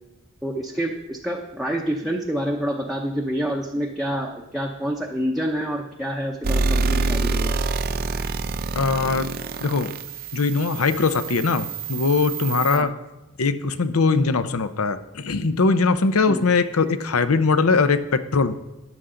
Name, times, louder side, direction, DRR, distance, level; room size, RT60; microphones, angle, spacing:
voice 1, 0.4-7.6 12.7-12.9 16.3-16.4, equal, ahead, 0 dB, 0.7 m, -27 dB
sound 1, 6.4-12.8, right 3 dB, 40° right, 0.5 m, -26 dB
voice 2, 8.7-9.3 9.6-10.0 10.3-13.0 13.4-18.5, left 4 dB, 75° left, 11 dB, 0.7 m, -21 dB
13.5 x 9.7 x 3.8 m, 1.0 s
head